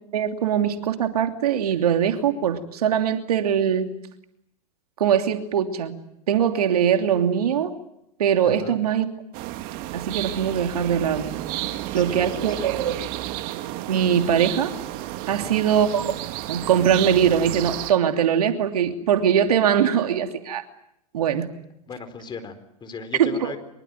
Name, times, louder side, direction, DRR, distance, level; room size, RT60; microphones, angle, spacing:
voice 1, 0.1-3.9 5.0-6.0 6.3-7.7 8.2-9.1 9.9-11.3 11.9-12.9 13.9-14.7 15.3-16.1 16.5-20.6 21.1-21.5 23.2-23.5, right 8 dB, 75° right, 6 dB, 2.9 m, -21 dB
voice 2, 8.4-8.8 11.7-13.0 15.3-15.6 21.9-23.6, left 5 dB, 25° left, 10 dB, 4.2 m, -38 dB
sound 1, 9.3-17.9, right 15 dB, 50° right, 2.1 m, -32 dB
24.5 x 23.5 x 9.2 m, 0.79 s
hypercardioid pair, 105°, 19 cm